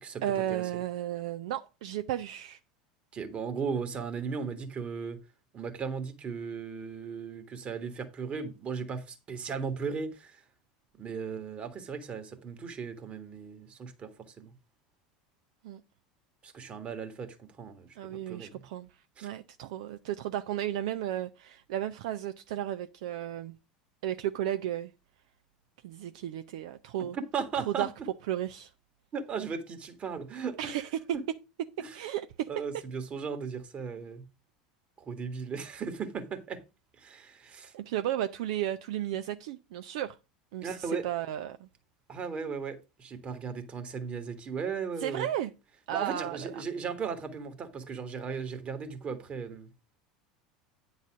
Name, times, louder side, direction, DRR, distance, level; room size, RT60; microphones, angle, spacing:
voice 1, 0.2-2.6 15.6-15.8 18.0-18.9 19.2-23.6 24.0-24.9 25.8-27.2 27.5-27.9 28.3-28.7 30.6-31.0 31.9-32.5 37.7-40.2 40.5-41.7 45.0-45.5 45.9-46.6, right 12 dB, 65° right, 0.6 m, -34 dB
voice 2, 3.1-5.2 5.5-10.4 10.9-14.1 14.4-14.5 16.4-17.9 18.3-18.6 19.2-19.3 27.1-27.9 29.1-30.7 31.8-32.0 32.5-34.3 35.0-36.6 37.0-37.7 40.6-41.1 42.1-45.3 45.9-49.7, right 5 dB, 35° right, 1.8 m, -36 dB
9.5 x 4.0 x 6.2 m
figure-of-eight pair, 80°, 4 cm